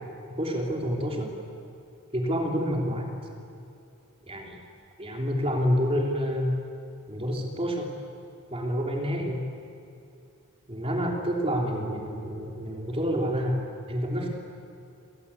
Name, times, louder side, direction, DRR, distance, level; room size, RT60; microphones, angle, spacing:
voice 1, 0.4-1.3 2.1-3.1 4.3-4.6 5.0-6.5 7.1-7.9 8.5-9.4 10.7-14.3, equal, 25° right, 1 dB, 3.2 m, -28 dB
27.0 x 20.0 x 8.4 m, 2.6 s
head